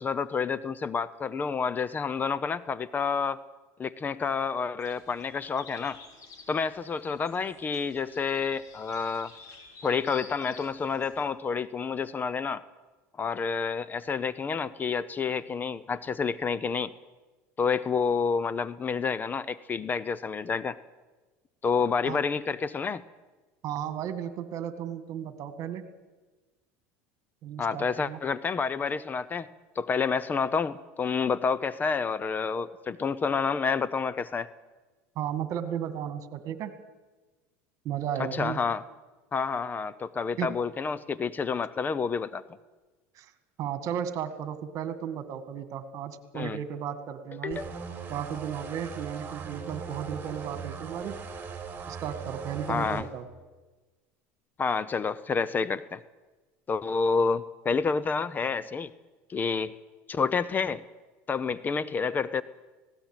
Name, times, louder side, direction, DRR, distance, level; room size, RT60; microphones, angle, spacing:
voice 1, 0.0-3.4 3.8-6.0 6.5-9.3 9.8-12.6 13.2-16.9 17.6-20.8 21.6-23.0 27.6-29.5 29.8-34.5 38.4-38.8 39.3-42.4 46.3-46.6 47.4-47.7 52.7-53.0 54.6-56.0 56.7-58.9 59.3-59.8 60.1-60.8 61.3-62.4, left 5 dB, 25° left, 17 dB, 0.7 m, -29 dB
sound 1, 4.8-11.2, left 4 dB, 50° left, 4.7 m, -51 dB
voice 2, 23.6-25.8 27.4-28.2 35.2-36.7 37.8-38.6 40.4-40.5 43.1-43.3 43.6-47.6 48.1-51.1 51.9-53.3, right 9 dB, 50° right, 11 dB, 2.0 m, -34 dB
sound 2, 47.5-53.0, right 5 dB, 25° right, 4.2 m, -39 dB
19.0 x 16.5 x 9.1 m, 1.2 s
supercardioid pair, 110°, 7 cm